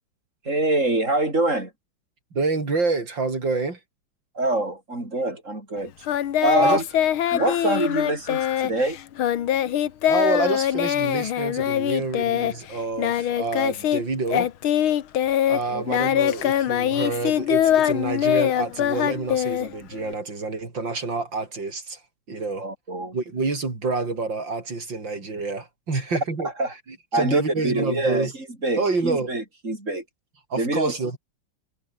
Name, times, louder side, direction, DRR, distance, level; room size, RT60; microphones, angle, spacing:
voice 1, 0.4-1.7 4.3-5.9 6.4-6.8 7.3-9.0 15.7-15.8 22.6-23.2 26.6-26.7 27.1-28.3 28.6-30.0 30.6-31.2, right 2 dB, 35° right, 6.4 m, -25 dB
voice 2, 2.3-3.8 6.6-6.8 10.1-14.5 15.5-22.0 22.3-22.7 23.1-26.5 26.9-28.3 28.8-29.3 30.5-31.2, right 3 dB, 60° right, 5.4 m, -28 dB
Singing, 6.1-14.0 14.3-20.1, left 10 dB, 80° left, 2.0 m, -23 dB
omnidirectional pair, 2.3 m